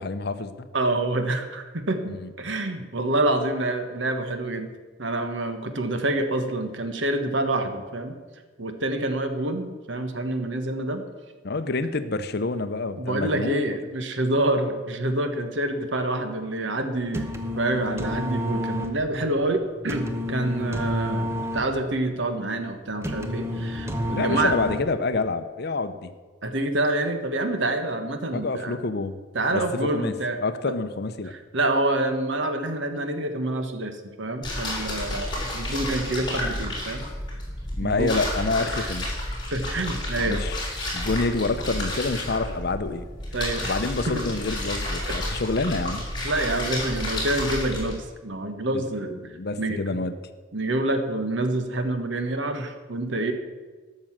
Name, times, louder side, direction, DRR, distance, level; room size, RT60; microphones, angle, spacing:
voice 1, 0.0-0.7 2.1-2.3 11.4-13.6 24.1-26.1 28.3-29.2 29.5-29.6 29.9-31.3 37.8-39.1 40.2-43.1 43.7-46.0 49.1-50.1, left 3 dB, 55° left, 11 dB, 0.7 m, -27 dB
voice 2, 0.7-4.7 5.0-8.2 8.6-11.0 13.0-17.3 17.5-24.5 26.4-28.8 29.3-30.4 31.3-37.1 37.8-38.1 38.6-38.9 39.5-40.4 43.3-43.8 44.1-44.2 46.2-49.2 49.6-50.0 50.5-53.3, right 2 dB, 70° right, 7 dB, 1.3 m, -27 dB
sound 1, 17.1-25.2, left 1 dB, 15° right, 0.9 m, -30 dB
sound 2, 34.4-48.0, left 1 dB, 25° left, 3.6 m, -31 dB
12.5 x 6.6 x 7.3 m, 1.4 s
head